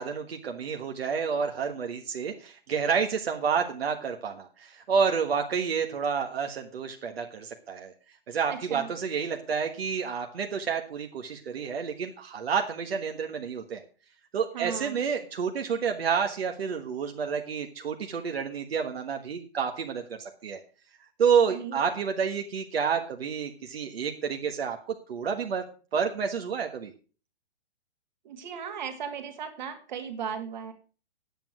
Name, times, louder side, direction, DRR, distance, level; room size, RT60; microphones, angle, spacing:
voice 1, 0.0-7.9 8.3-13.8 14.3-20.6 21.2-24.8 25.1-25.6 25.9-26.9, right 6 dB, 70° right, 4 dB, 1.5 m, -29 dB
voice 2, 8.5-8.9 14.5-15.0 21.5-21.9 28.2-30.7, right 7 dB, 45° right, 7 dB, 2.2 m, -36 dB
9.5 x 8.8 x 6.1 m, 0.37 s
hypercardioid pair, 170°, 32 cm